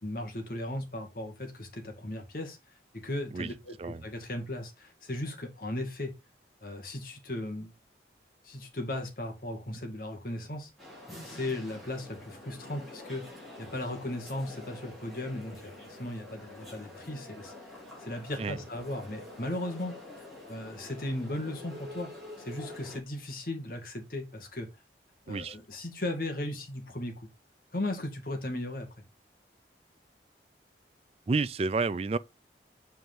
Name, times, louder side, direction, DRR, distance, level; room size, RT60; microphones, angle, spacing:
voice 1, 0.0-2.6 2.9-6.1 6.6-7.7 8.4-10.7 11.2-13.3 13.6-17.5 18.0-19.9 20.5-22.1 22.4-24.7 25.3-27.3 27.7-28.9, left 1 dB, 55° left, 2.0 m, -36 dB
sound 1, 10.8-23.0, left 2 dB, ahead, 4.0 m, -47 dB
voice 2, 31.3-32.2, right 4 dB, 35° right, 0.4 m, -30 dB
8.0 x 4.5 x 3.6 m
head